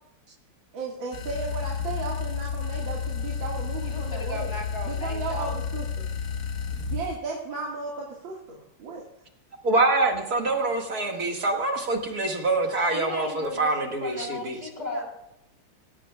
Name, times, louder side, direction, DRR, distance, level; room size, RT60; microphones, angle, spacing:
voice 1, 0.7-4.5 4.8-6.1 6.9-9.1 14.9-15.0, right 4 dB, 65° right, -2 dB, 2.6 m, -35 dB
sound 1, 1.1-7.2, left 6 dB, 45° left, 1.7 m, -31 dB
voice 2, 3.8-5.6 12.7-15.1, left 2 dB, 20° left, -1 dB, 3.8 m, -36 dB
voice 3, 9.6-14.6, right 2 dB, 45° right, 2 dB, 2.2 m, -25 dB
17.5 x 15.5 x 2.3 m, 0.82 s
omnidirectional pair, 2.3 m